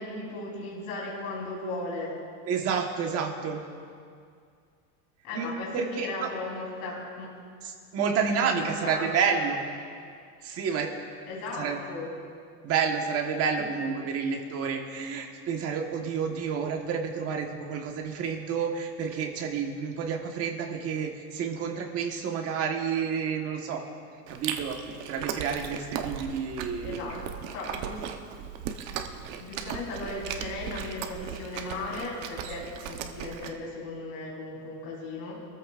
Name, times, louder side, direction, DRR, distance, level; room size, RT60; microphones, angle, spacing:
voice 1, 0.0-2.2 5.2-7.3 8.6-9.4 11.3-12.1 26.8-27.2 27.5-28.0 29.4-35.5, left 2 dB, 50° left, -5 dB, 3.8 m, -36 dB
voice 2, 2.5-3.6 5.3-6.3 7.6-9.6 10.4-10.9 11.6-11.8 12.6-23.8 24.3-24.8 25.1-27.2, right 6 dB, 30° right, 2 dB, 1.3 m, -30 dB
Chewing mastication, 24.3-33.5, right 8 dB, 55° right, 1.0 m, -37 dB
25.5 x 14.0 x 2.5 m, 2.3 s
cardioid pair, 170°, 44 cm